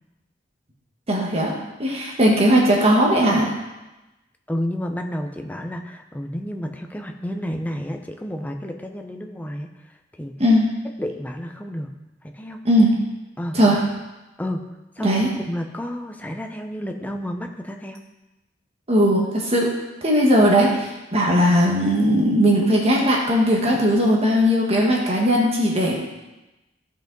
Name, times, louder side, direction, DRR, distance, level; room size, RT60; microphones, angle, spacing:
voice 1, 1.1-3.5 10.4-10.7 12.6-13.0 13.5-13.8 15.0-15.3 18.9-26.0, equal, 35° right, -2 dB, 1.5 m, -18 dB
voice 2, 4.5-9.7 10.2-10.3 11.0-11.9 12.2-12.6 13.4-13.6 14.4-14.6 15.0-15.2 15.5-18.0, equal, 10° left, 4 dB, 0.7 m, -30 dB
14.0 x 5.3 x 3.9 m, 1.0 s
head